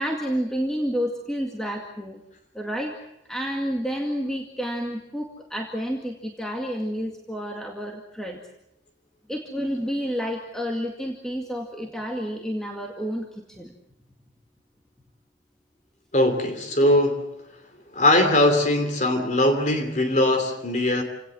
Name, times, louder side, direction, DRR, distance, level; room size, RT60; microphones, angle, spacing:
voice 1, 0.0-2.2 2.5-8.4 9.3-13.7, equal, 5° left, 1 dB, 2.1 m, -30 dB
voice 2, 16.1-17.3 17.9-21.0, left 1 dB, 40° left, 7 dB, 2.8 m, -20 dB
28.5 x 18.0 x 7.7 m, 0.88 s
head